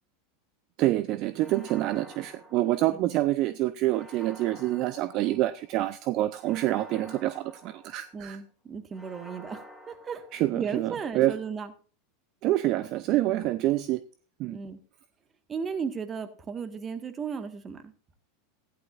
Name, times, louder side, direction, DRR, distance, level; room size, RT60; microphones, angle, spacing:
voice 1, 0.8-8.4 10.3-11.3 12.4-14.0 14.4-14.6, right 15 dB, 45° right, 0.6 m, -27 dB
sound 1, 1.3-3.2 3.9-5.7 6.4-8.3 8.9-10.8, equal, ahead, 3.2 m, -49 dB
voice 2, 8.1-10.2 10.5-11.7 14.5-14.8 15.5-17.9, right 6 dB, 25° right, 1.6 m, -35 dB
15.0 x 11.0 x 2.5 m
hypercardioid pair, 90°, 0 cm